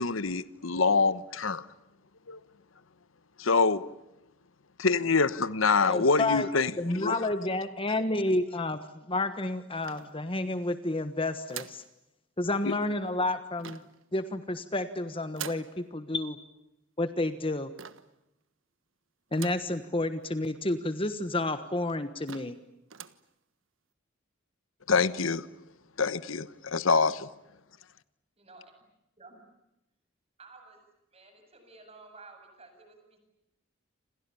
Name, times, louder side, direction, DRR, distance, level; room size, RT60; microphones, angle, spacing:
voice 1, 0.0-1.7 2.3-2.4 3.4-3.8 4.8-7.4 12.6-12.8 24.9-25.5 26.0-27.3, left 4 dB, 85° left, 1.1 m, -26 dB
voice 2, 5.9-6.5 6.8-8.8 9.1-11.8 12.4-13.8 14.1-16.4 17.0-17.7 19.3-22.6, left 2 dB, 25° left, 1.3 m, -30 dB
sound 1, 9.8-10.6 11.5-11.9 13.6-14.0 15.3-15.7 17.8-18.2 19.3-19.7 20.2-20.3 20.5-20.6 21.4-21.5 21.9-22.0 22.3-22.6 22.9-23.2, right 9 dB, 80° right, 1.4 m, -43 dB
voice 3, 28.4-28.7 29.2-29.4 30.4-30.8 31.1-33.2, right 3 dB, 30° right, 7.8 m, -52 dB
29.0 x 27.0 x 7.0 m
head